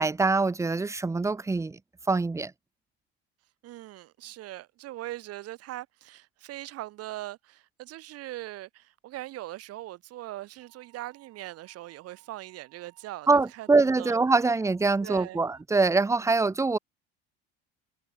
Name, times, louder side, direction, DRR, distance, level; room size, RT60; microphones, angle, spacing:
voice 1, 0.0-1.8 2.1-2.5 13.3-16.8, right 3 dB, 10° right, 0.6 m, -24 dB
voice 2, 3.6-14.2 15.0-15.4, right 15 dB, 55° right, 1.2 m, -41 dB
sound 1, 10.6-15.6, right 27 dB, 70° right, 6.3 m, -62 dB
supercardioid pair, 85°, 29 cm